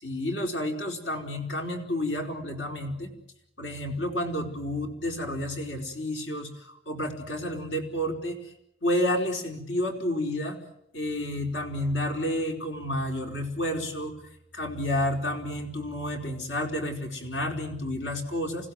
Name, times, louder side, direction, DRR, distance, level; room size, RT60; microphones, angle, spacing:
voice 1, 0.0-3.1 3.6-6.5 6.9-8.4 8.8-10.6 10.9-14.1 14.5-18.7, left 1 dB, 70° left, 3 dB, 4.6 m, -30 dB
29.5 x 16.5 x 9.5 m, 0.80 s
head